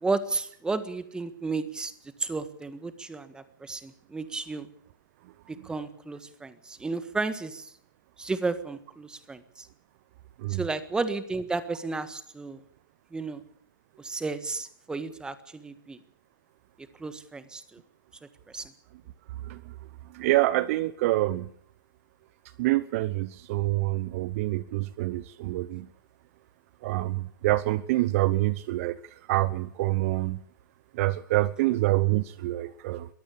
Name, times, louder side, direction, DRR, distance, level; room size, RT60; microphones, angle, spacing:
voice 1, 0.0-1.9 2.2-4.7 5.6-7.7 8.2-9.7 10.5-12.6 13.1-13.4 14.0-16.0 17.0-17.8 18.5-18.7, right 3 dB, 5° right, 12 dB, 1.6 m, -33 dB
voice 2, 20.1-21.5 22.6-25.9 26.8-29.0 29.3-30.4 30.9-33.1, right 17 dB, 40° right, 18 dB, 0.8 m, -26 dB
22.5 x 14.0 x 8.6 m, 0.63 s
hypercardioid pair, 125°, 11 cm